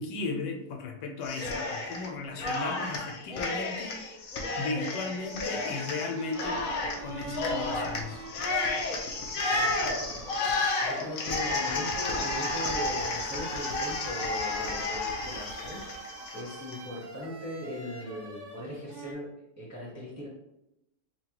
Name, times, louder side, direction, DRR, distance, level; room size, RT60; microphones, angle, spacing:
voice 1, 0.0-4.2 4.6-6.6 7.0-8.3, left 3 dB, 80° left, 3 dB, 1.3 m, -36 dB
Cheering, 1.2-2.1 2.4-16.8, left 3 dB, 65° left, 1.0 m, -32 dB
sound 1, 5.0-19.1, right 3 dB, 80° right, 0.5 m, -43 dB
voice 2, 9.5-10.2 10.8-19.3 19.6-20.3, equal, 15° right, -5 dB, 0.7 m, -39 dB
5.9 x 2.3 x 2.9 m, 0.86 s
omnidirectional pair, 1.8 m